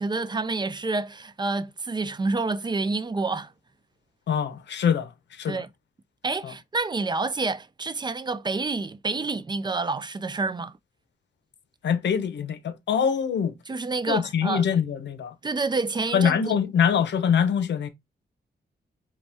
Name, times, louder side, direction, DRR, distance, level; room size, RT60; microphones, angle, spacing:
voice 1, 0.0-3.5 5.5-5.7 6.2-10.7 13.7-14.6 15.4-16.5, right 3 dB, 25° right, 0.4 m, -28 dB
voice 2, 4.3-5.1 5.4-5.6 6.4-6.5 11.8-13.5 14.1-15.3 16.1-17.9, left 7 dB, 85° left, 0.7 m, -24 dB
5.2 x 2.2 x 3.4 m
wide cardioid pair, 115°, 18 cm